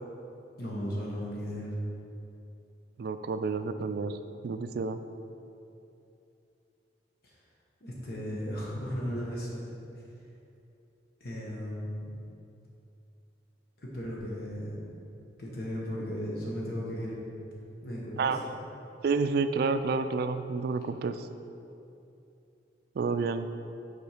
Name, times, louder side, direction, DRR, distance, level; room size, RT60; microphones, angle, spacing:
voice 1, 0.6-1.7 7.2-7.4 7.8-9.6 9.9-10.0 11.2-12.1 13.8-14.8 15.4-17.2 17.8-18.4, equal, 55° left, -4 dB, 1.2 m, -36 dB
voice 2, 3.0-4.2 4.4-5.0 18.2-18.4 19.0-21.3 23.0-23.5, right 4 dB, 55° right, 10 dB, 0.3 m, -29 dB
7.1 x 4.4 x 4.9 m, 2.7 s
head